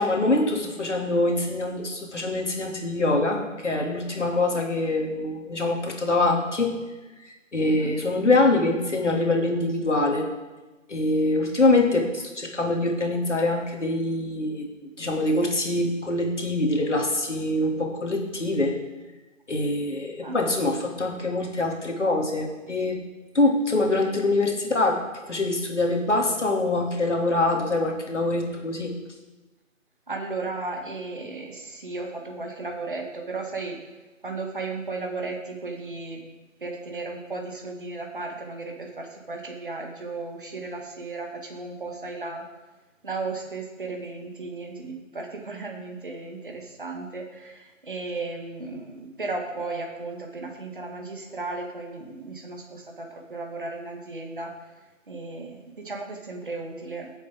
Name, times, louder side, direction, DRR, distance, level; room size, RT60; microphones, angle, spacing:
voice 1, 0.0-6.7 7.2-10.3 10.9-14.7 15.0-18.7 19.5-23.0 23.3-25.0 25.3-28.9, left 2 dB, 60° left, 1 dB, 2.5 m, -24 dB
voice 2, 7.6-8.0 20.2-20.4 30.1-33.8 34.2-36.2 36.6-42.5 43.0-54.5 55.1-57.1, right 3 dB, 40° right, 2 dB, 1.7 m, -35 dB
15.0 x 7.7 x 3.6 m, 1.2 s
figure-of-eight pair, 170°, 39 cm